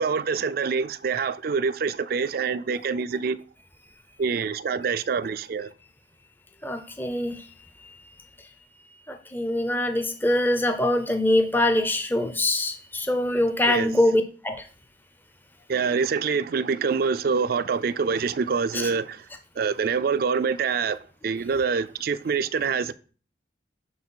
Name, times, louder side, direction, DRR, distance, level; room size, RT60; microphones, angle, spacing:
voice 1, 0.0-3.4 4.2-5.7 13.7-13.9 15.7-19.2 19.6-21.0 21.2-22.9, right 5 dB, 55° right, 0.4 m, -25 dB
voice 2, 6.6-7.5 9.1-14.6 18.7-18.9, left 1 dB, 10° left, 0.5 m, -24 dB
8.2 x 4.0 x 4.5 m
head